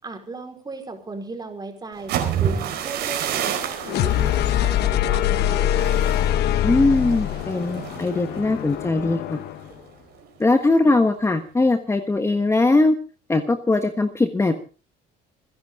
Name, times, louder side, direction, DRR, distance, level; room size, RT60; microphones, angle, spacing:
voice 1, 0.0-5.7, right 3 dB, 25° right, 5 dB, 4.8 m, -36 dB
sound 1, 1.9-9.8 10.1-10.5 10.8-11.2, right 9 dB, 85° right, 4.8 m, -30 dB
sound 2, 3.8-9.7, left 11 dB, 75° left, 1.1 m, -23 dB
voice 2, 6.6-9.4 10.4-13.0 13.3-14.5, left 2 dB, 15° left, 7 dB, 1.4 m, -20 dB
28.0 x 10.5 x 3.8 m, 0.36 s
cardioid pair, 110°, 17 cm